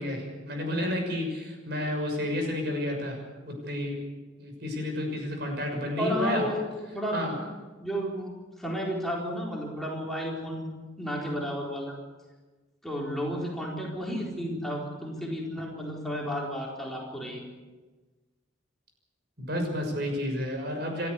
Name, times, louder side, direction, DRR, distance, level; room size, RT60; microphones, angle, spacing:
voice 1, 0.0-3.2 3.4-4.0 4.4-6.5 7.1-7.3 19.4-21.1, left 1 dB, 60° right, 3 dB, 6.4 m, -31 dB
voice 2, 6.0-7.5 7.8-8.3 8.6-10.7 11.0-11.9 12.8-17.4, equal, ahead, -3 dB, 4.3 m, -32 dB
29.5 x 13.5 x 8.4 m, 1.2 s
head